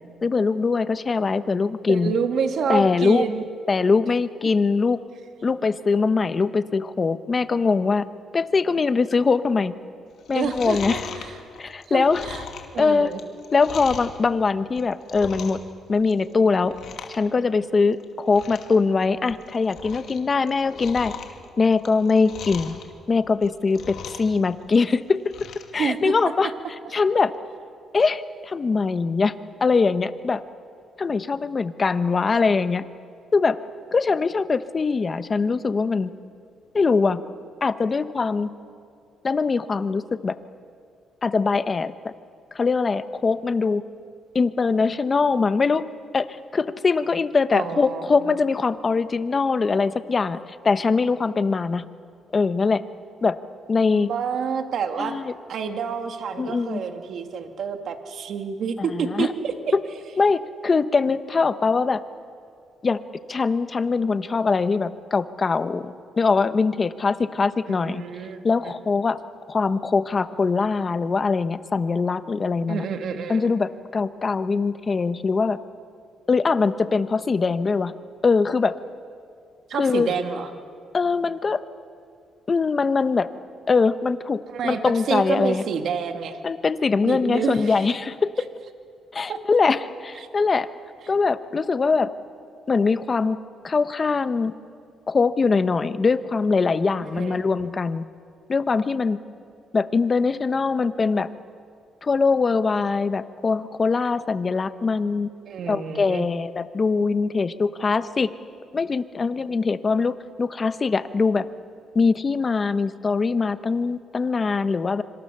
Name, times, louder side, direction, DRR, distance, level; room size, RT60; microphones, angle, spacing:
voice 1, 0.2-2.1 2.7-3.3 3.7-5.0 5.4-8.1 8.3-9.7 10.3-11.1 11.6-12.2 12.8-13.1 13.5-15.6 15.9-16.7 17.1-21.1 21.6-22.7 23.1-25.2 25.7-26.5 26.9-27.3 27.9-29.3 29.6-30.4 31.0-32.8 33.3-33.6 33.9-36.1 36.7-37.2 37.6-38.5 39.2-40.3 41.2-41.9 42.5-43.8 44.3-45.8 46.1-46.3 46.5-50.4 50.6-51.8 52.3-52.8 53.2-53.4 53.7-54.1 55.0-55.3 56.4-56.8 58.8-59.3 60.2-62.0 62.8-63.0 63.3-68.0 68.4-69.2 69.5-72.8 73.3-75.6 76.3-77.9 78.2-78.7 79.8-80.1 80.9-81.6 82.5-83.3 83.7-85.6 86.4-88.5 89.1-90.7 91.1-92.1 92.7-93.4 93.6-94.5 95.1-98.1 98.5-99.2 99.7-101.3 102.0-105.3 105.7-108.3 108.7-111.5 111.9-115.0, left 4 dB, 35° left, 12 dB, 1.1 m, -22 dB
voice 2, 1.9-3.5 10.3-11.4 11.9-12.4 12.7-13.2 25.8-26.1 47.5-48.4 53.9-55.2 55.5-59.5 67.7-68.4 68.6-68.7 72.7-73.5 79.7-80.5 84.5-86.4 87.0-87.9 89.3-89.4 90.2-90.3 97.0-97.4 105.5-106.3, right 6 dB, 65° right, 6 dB, 2.0 m, -28 dB
Chewing mastication, 10.2-14.2 14.6-15.7 16.0-16.3 16.6-17.2 17.5-17.6 18.0-18.1 18.3-18.7 19.1-20.2 20.5-22.8 23.3-24.4 24.6-25.7 26.1-26.2, left 7 dB, 70° left, 2.5 m, -38 dB
26.0 x 25.5 x 6.8 m, 2.3 s
cardioid pair, 90°, 0 cm